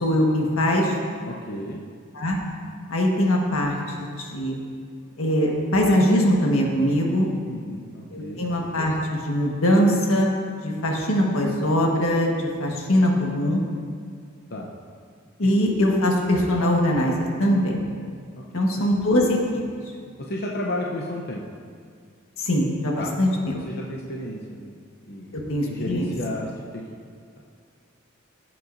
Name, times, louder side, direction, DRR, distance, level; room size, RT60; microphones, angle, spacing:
voice 1, 0.0-0.9 2.1-2.4 2.9-4.5 5.2-7.3 8.1-10.3 10.6-13.6 15.4-17.8 18.5-19.6 22.4-23.5 25.3-26.1, equal, 80° left, -1 dB, 1.5 m, -22 dB
voice 2, 1.2-1.8 7.4-8.4 14.5-14.7 15.4-15.5 18.4-18.8 20.2-21.4 23.0-23.3 23.5-24.8 25.1-25.4 25.7-26.8, left 1 dB, 50° left, -2 dB, 0.7 m, -33 dB
15.5 x 7.6 x 2.7 m, 2.1 s
head